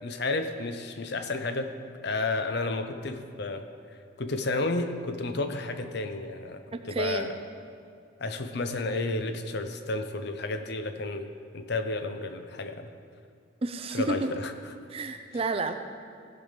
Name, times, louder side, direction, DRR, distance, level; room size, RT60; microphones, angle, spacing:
voice 1, 0.0-1.8 2.0-3.7 4.2-7.4 8.2-12.9 13.9-14.5, left 2 dB, 55° left, 7 dB, 0.6 m, -31 dB
voice 2, 6.9-7.3 13.6-14.3 14.9-15.7, right 3 dB, 30° right, 8 dB, 0.4 m, -30 dB
16.0 x 5.6 x 5.2 m, 2.3 s
head